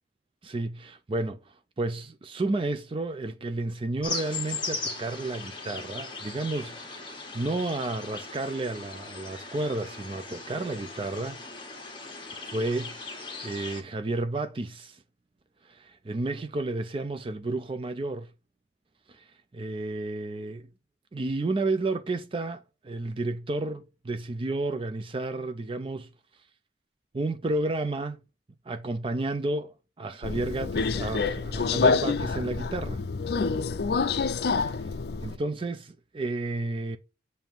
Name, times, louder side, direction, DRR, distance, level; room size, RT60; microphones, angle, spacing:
voice 1, 0.4-11.4 12.5-15.0 15.6-18.3 19.1-20.7 21.1-26.4 27.1-28.2 28.7-33.0 34.5-37.0, right 2 dB, 30° right, 0.4 m, -32 dB
sound 1, 4.0-13.8, left 3 dB, 25° left, 1.4 m, -38 dB
Subway metro underground, 30.2-35.4, left 4 dB, 60° left, 0.4 m, -27 dB
7.1 x 2.7 x 5.7 m
head